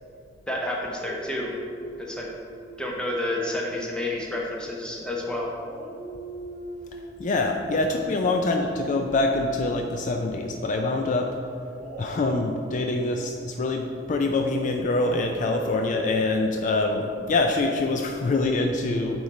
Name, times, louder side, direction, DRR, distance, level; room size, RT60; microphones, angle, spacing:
voice 1, 0.5-1.5 2.0-2.3 2.8-5.5, left 1 dB, 5° left, -2 dB, 0.7 m, -29 dB
Dog, 1.0-5.2 5.6-10.6 11.7-18.7, equal, 45° right, 0.6 m, -43 dB
voice 2, 7.2-11.3 12.0-19.2, left 2 dB, 45° left, 3 dB, 0.3 m, -25 dB
8.7 x 3.2 x 4.1 m, 2.4 s
head